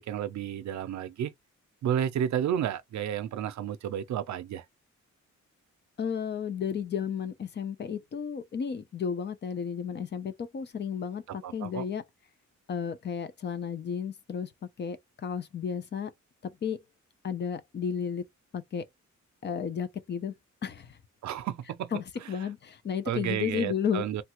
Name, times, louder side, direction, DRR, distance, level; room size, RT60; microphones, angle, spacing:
voice 1, 0.0-1.3 1.8-4.6 11.3-11.9 21.2-21.9 23.1-24.2, right 10 dB, 70° right, 0.5 m, -31 dB
voice 2, 6.0-12.0 12.7-14.5 14.8-15.0 15.2-16.1 16.4-16.8 17.2-18.2 18.5-18.8 19.4-20.3 20.6-21.0 21.9-24.0, left 7 dB, 35° left, 0.5 m, -33 dB
3.3 x 2.3 x 2.9 m
wide cardioid pair, 165°, 30 cm